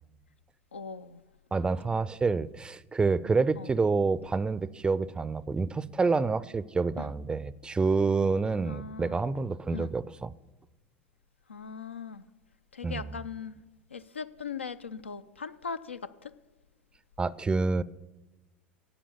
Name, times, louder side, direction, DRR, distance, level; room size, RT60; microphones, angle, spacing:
voice 1, 0.7-1.2 1.6-1.9 3.6-3.7 7.0-7.1 8.6-9.2 9.7-9.9 11.5-12.3 12.7-13.6 13.9-16.3, left 5 dB, 80° left, 0.5 m, -40 dB
voice 2, 1.5-10.3 12.8-13.1 17.2-17.8, right 4 dB, 15° right, 0.4 m, -28 dB
11.0 x 7.3 x 7.0 m
figure-of-eight pair, 75°, 6 cm